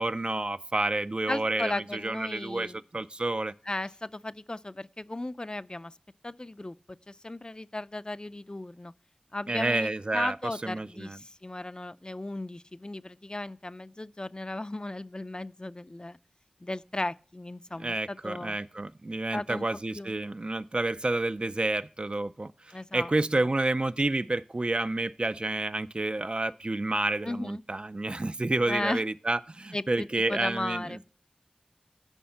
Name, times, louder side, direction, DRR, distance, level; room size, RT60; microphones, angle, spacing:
voice 1, 0.0-3.5 9.5-10.4 10.6-11.2 17.8-31.0, right 2 dB, 45° right, 0.4 m, -29 dB
voice 2, 1.3-2.8 3.7-5.9 6.2-6.8 7.1-8.9 9.3-16.2 16.6-18.6 19.3-19.6 19.9-20.1 22.7-23.1 27.2-27.6 28.6-29.0 29.7-31.1, left 2 dB, 35° left, 0.4 m, -36 dB
12.5 x 5.6 x 5.7 m
wide cardioid pair, 40°, 2 cm